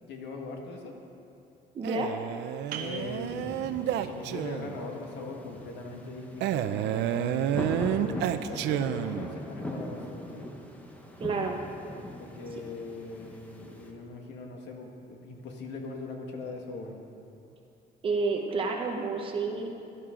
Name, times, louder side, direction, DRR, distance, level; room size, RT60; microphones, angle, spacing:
voice 1, 0.1-1.0 2.7-10.5 12.2-17.0, left 3 dB, 75° left, 2 dB, 1.7 m, -41 dB
voice 2, 1.7-2.1 11.2-11.6 18.0-19.7, right 3 dB, 30° right, 2 dB, 0.9 m, -29 dB
Male speech man speaking, 1.8-4.8 6.4-9.4, right 10 dB, 75° right, 0.5 m, -30 dB
sound 1, 2.7-8.1, right 7 dB, 55° right, 1.0 m, -47 dB
sound 2, 2.8-13.9, left 1 dB, 10° left, 0.8 m, -41 dB
16.5 x 11.5 x 3.8 m, 2.6 s
cardioid pair, 180°, 18 cm